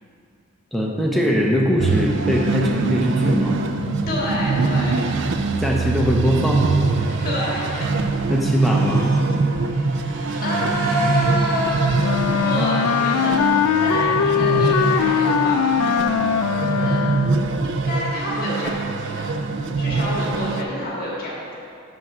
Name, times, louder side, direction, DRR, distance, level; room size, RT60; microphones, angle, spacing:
voice 1, 0.7-3.6 5.6-6.7 8.3-9.1, equal, ahead, -2 dB, 0.7 m, -21 dB
sound 1, 1.8-20.6, right 3 dB, 55° right, 0.3 m, -23 dB
voice 2, 4.1-5.1 7.2-7.9 8.6-8.7 10.4-12.0 12.4-13.4 13.8-16.1 16.7-17.1 17.6-19.3 19.8-21.5, left 1 dB, 40° left, -5 dB, 1.7 m, -28 dB
sound 2, 6.0-14.2, right 2 dB, 75° right, 1.8 m, -37 dB
Wind instrument woodwind instrument, 12.0-17.5, left 7 dB, 85° left, 0.3 m, -20 dB
5.9 x 5.8 x 6.0 m, 2.5 s
head